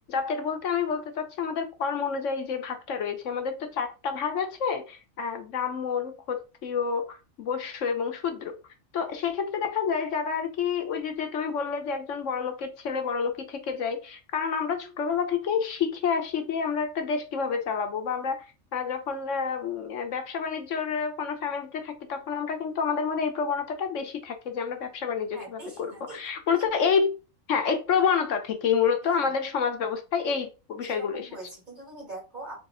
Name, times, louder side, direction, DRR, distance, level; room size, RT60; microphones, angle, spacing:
voice 1, 0.1-8.6 8.9-18.4 18.7-27.1 27.5-31.3, left 6 dB, 65° left, 1.2 m, -29 dB
voice 2, 25.3-26.2 29.1-29.3 30.8-32.5, right 2 dB, 35° right, 2.3 m, -42 dB
4.1 x 3.4 x 3.7 m
omnidirectional pair, 1.4 m